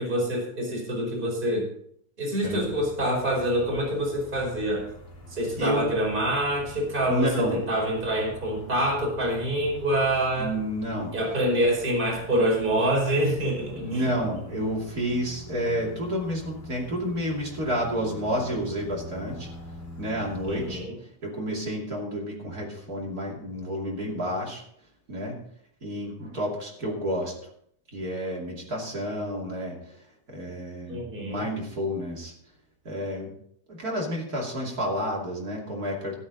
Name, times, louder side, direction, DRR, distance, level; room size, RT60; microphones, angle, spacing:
voice 1, 0.0-1.7 2.2-4.8 5.3-10.5 11.1-14.1 20.5-21.0 30.9-31.4, right 1 dB, 10° right, -1 dB, 4.4 m, -26 dB
sound 1, 2.4-20.8, equal, 35° left, 2.3 m, -45 dB
voice 2, 5.6-5.9 7.1-7.6 10.4-11.1 13.7-19.5 20.0-20.8 21.2-24.6 25.1-25.4 25.8-27.3 27.9-29.8 30.3-32.3 32.8-33.3 33.7-36.2, equal, 25° right, -2 dB, 2.2 m, -30 dB
14.0 x 10.5 x 4.1 m, 0.68 s
omnidirectional pair, 5.3 m